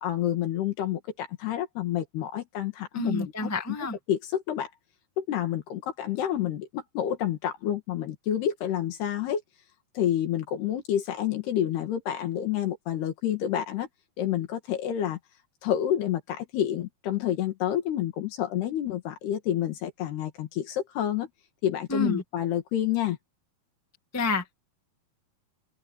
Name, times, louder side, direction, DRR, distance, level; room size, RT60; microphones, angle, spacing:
voice 1, 0.0-3.5 4.1-4.7 5.2-9.4 10.0-13.9 14.2-15.2 15.6-21.3 21.6-23.2, left 11 dB, 80° left, 4.0 m, -29 dB
voice 2, 2.9-4.0 21.9-22.2 24.1-24.6, left 2 dB, 10° left, 0.8 m, -29 dB
omnidirectional pair, 4.6 m